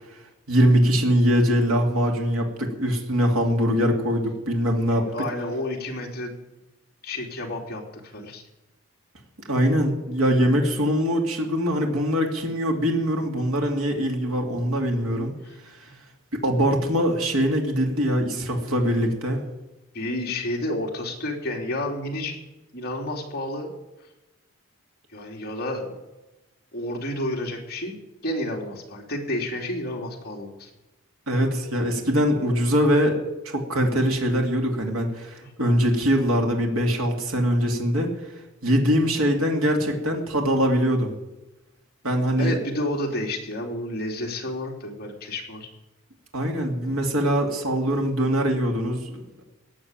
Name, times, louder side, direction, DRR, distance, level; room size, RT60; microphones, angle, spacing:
voice 1, 0.5-5.1 9.5-15.3 16.4-19.4 31.3-33.2 33.4-38.1 38.6-41.1 42.0-42.6 46.3-49.3, equal, 85° right, 2 dB, 2.8 m, -22 dB
voice 2, 4.8-6.3 7.0-7.8 8.1-8.4 19.9-22.4 22.7-23.7 25.1-25.9 26.7-30.7 35.4-35.5 42.4-45.7 46.8-46.9, left 1 dB, 45° left, 0 dB, 3.1 m, -30 dB
18.0 x 7.0 x 9.1 m, 1.0 s
head